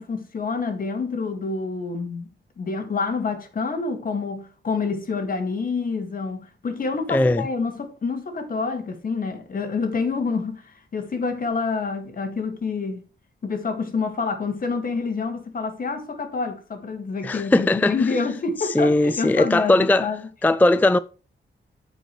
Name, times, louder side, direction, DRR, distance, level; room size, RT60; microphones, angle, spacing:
voice 1, 0.0-2.3 2.6-13.0 13.4-20.2, left 4 dB, 50° left, 2.1 m, -27 dB
voice 2, 7.1-7.4 17.2-18.1 18.6-20.1 20.4-21.0, left 2 dB, 10° left, 0.3 m, -19 dB
15.0 x 5.1 x 3.2 m
wide cardioid pair, 140°, 19 cm